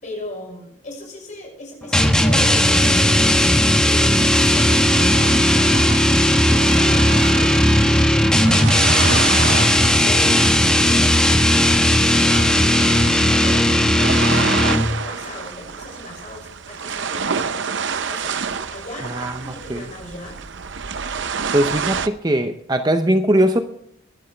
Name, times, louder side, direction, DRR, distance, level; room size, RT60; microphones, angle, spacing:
voice 1, 0.0-3.5 3.8-9.5 10.0-17.7 18.0-20.4, left 1 dB, 40° left, -1 dB, 6.3 m, -37 dB
sound 1, 1.9-15.0, left 1 dB, 5° left, 0.9 m, -16 dB
sound 2, 4.1-22.1, right 6 dB, 65° right, 0.7 m, -29 dB
voice 2, 19.1-19.8 21.5-23.6, right 1 dB, 20° right, 8 dB, 0.6 m, -20 dB
22.0 x 11.5 x 3.3 m, 0.70 s
head